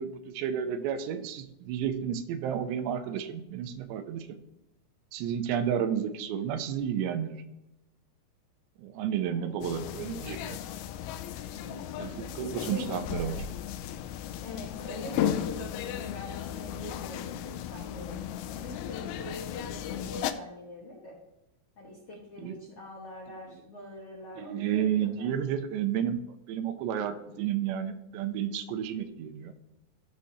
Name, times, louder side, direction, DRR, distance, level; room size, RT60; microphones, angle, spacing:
voice 1, 0.0-4.4 5.1-7.4 8.8-10.6 12.0-13.4 22.4-22.6 24.4-26.2 26.5-29.5, right 9 dB, 85° right, 9 dB, 2.9 m, -31 dB
voice 2, 9.2-9.6 11.5-11.9 12.6-12.9 14.4-18.2 18.5-21.2 21.8-25.3, left 2 dB, 55° left, -5 dB, 1.7 m, -43 dB
sound 1, 9.6-20.3, left 10 dB, 85° left, 2.3 m, -35 dB
15.0 x 6.5 x 2.8 m, 0.90 s
omnidirectional pair, 4.9 m